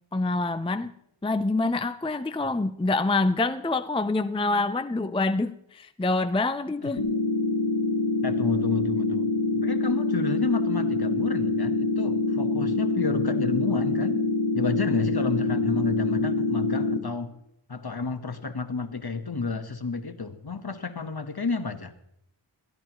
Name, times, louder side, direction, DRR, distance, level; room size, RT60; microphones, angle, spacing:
voice 1, 0.1-0.9 1.2-7.0, left 2 dB, 10° left, 11 dB, 0.5 m, -26 dB
sound 1, 7.0-17.0, left 2 dB, 90° left, 1.8 m, -25 dB
voice 2, 8.2-14.2 14.5-17.3 17.7-21.9, left 4 dB, 50° left, 8 dB, 1.3 m, -31 dB
21.5 x 14.0 x 3.0 m, 0.74 s
wide cardioid pair, 45°, 48 cm